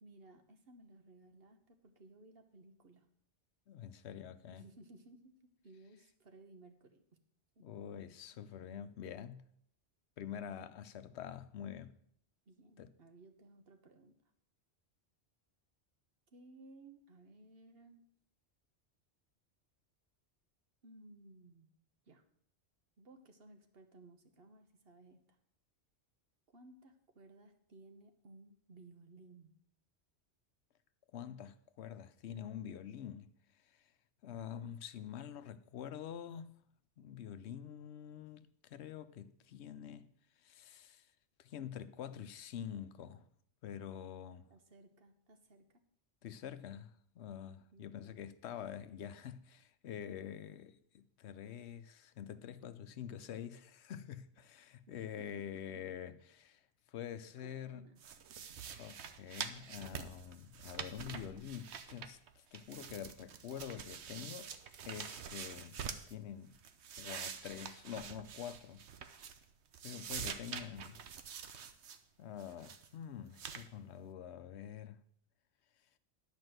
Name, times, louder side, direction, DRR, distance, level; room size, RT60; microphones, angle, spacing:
voice 1, 0.0-3.1 4.5-7.0 7.6-7.7 8.3-8.4 12.5-14.2 16.3-18.0 20.8-21.7 22.1-22.2 23.0-25.4 26.5-29.5 44.5-45.7 47.6-47.9 54.9-55.4 57.4-58.0, right 2 dB, 60° right, 1.3 m, -59 dB
voice 2, 3.7-4.6 7.6-9.5 10.2-12.0 12.8-12.9 31.1-33.3 34.2-36.5 37.0-40.1 40.4-41.1 41.4-43.3 43.6-44.5 46.2-56.6 56.9-57.9 58.8-64.5 64.8-65.8 66.1-66.5 67.0-68.8 69.8-71.0 72.2-75.0, left 9 dB, 80° left, 0.9 m, -46 dB
sound 1, 58.0-62.3 62.5-66.1 66.5-69.5 69.7-72.0 72.4-72.9 73.3-73.7, right 7 dB, 80° right, 1.1 m, -46 dB
11.0 x 5.2 x 7.8 m
omnidirectional pair, 1.1 m